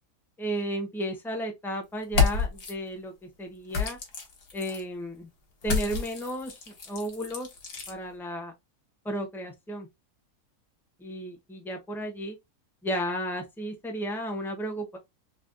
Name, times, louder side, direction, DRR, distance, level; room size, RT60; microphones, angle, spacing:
voice 1, 0.4-4.0 4.5-5.3 5.6-7.5 7.9-8.5 9.0-9.9 11.0-12.4 12.8-15.0, equal, ahead, 0.6 m, -33 dB
sound 1, 2.0-2.7 3.7-4.8 5.6-7.9, left 5 dB, 70° left, 1.7 m, -29 dB
6.2 x 2.2 x 2.5 m
omnidirectional pair, 1.7 m